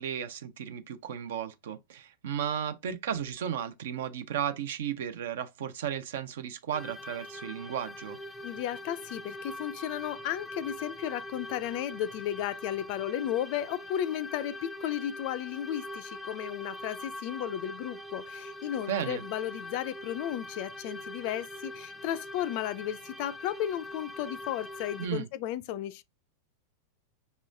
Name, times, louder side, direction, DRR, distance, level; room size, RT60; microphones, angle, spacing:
voice 1, 0.0-8.2 18.9-19.2 25.0-25.3, right 9 dB, 60° right, 0.5 m, -34 dB
sound 1, 6.7-25.1, left 1 dB, ahead, 0.6 m, -43 dB
voice 2, 8.4-26.0, left 11 dB, 45° left, 0.3 m, -34 dB
5.4 x 3.0 x 2.5 m
figure-of-eight pair, 90°, 0 cm